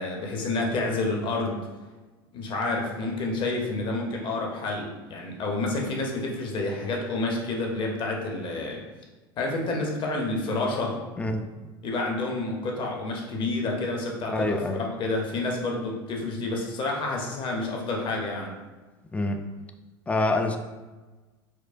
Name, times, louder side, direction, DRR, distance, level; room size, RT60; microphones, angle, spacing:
voice 1, 0.0-1.6 2.3-8.8 9.4-11.0 11.8-18.5, left 2 dB, 40° left, 0 dB, 0.8 m, -29 dB
voice 2, 11.2-11.5 14.3-14.8 19.1-19.4 20.1-20.6, left 2 dB, 10° left, 5 dB, 0.3 m, -26 dB
4.5 x 2.1 x 2.5 m, 1.2 s
hypercardioid pair, 80°, 13 cm